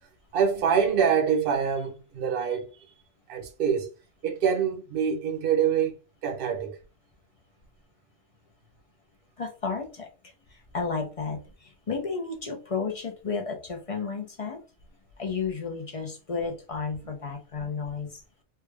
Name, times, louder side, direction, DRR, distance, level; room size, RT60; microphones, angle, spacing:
voice 1, 0.3-2.9 3.3-3.9 4.2-6.0 6.2-6.8, right 7 dB, 50° right, 0.9 m, -25 dB
voice 2, 9.4-10.1 10.7-14.6 15.2-18.2, left 5 dB, 35° left, 0.6 m, -32 dB
3.3 x 2.3 x 3.3 m
omnidirectional pair, 1.3 m